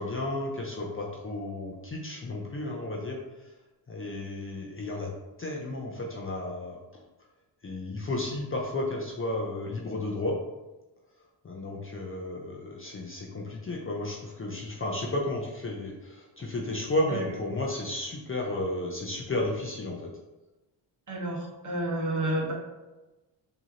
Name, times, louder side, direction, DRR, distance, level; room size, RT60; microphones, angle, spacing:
voice 1, 0.0-3.2 3.9-5.1 5.4-6.8 7.6-10.4 11.4-20.1, left 2 dB, 30° left, -2 dB, 0.5 m, -33 dB
voice 2, 21.1-22.5, right 1 dB, 40° right, -2 dB, 1.1 m, -30 dB
4.6 x 2.8 x 2.8 m, 1.1 s
cardioid pair, 100°, 48 cm